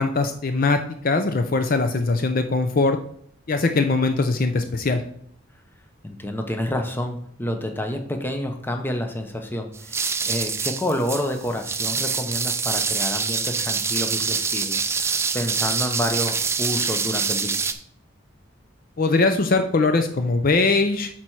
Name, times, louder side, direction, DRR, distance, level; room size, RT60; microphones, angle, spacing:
voice 1, 0.0-3.0 3.5-5.0 19.0-21.1, left 3 dB, 45° left, 7 dB, 0.5 m, -21 dB
voice 2, 6.0-17.6, left 1 dB, 10° left, 5 dB, 0.7 m, -29 dB
sound 1, 9.7-17.7, right 5 dB, 15° right, 0.3 m, -25 dB
8.2 x 4.4 x 4.7 m, 0.64 s
head